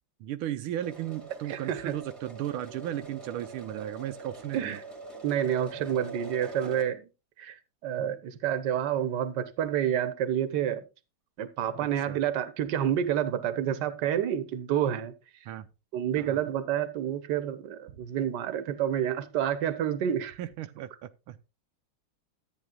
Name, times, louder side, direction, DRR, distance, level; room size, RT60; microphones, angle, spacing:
voice 1, 0.2-4.8 11.8-12.2 15.5-15.7 16.2-16.4 20.4-21.4, right 12 dB, 85° right, 1.5 m, -36 dB
sound 1, 0.8-6.8, right 3 dB, 15° right, 1.8 m, -43 dB
voice 2, 1.5-1.9 4.5-4.8 5.2-7.1 7.4-10.8 11.4-15.1 15.9-20.3, right 10 dB, 60° right, 1.6 m, -29 dB
13.5 x 9.3 x 2.3 m
omnidirectional pair, 2.3 m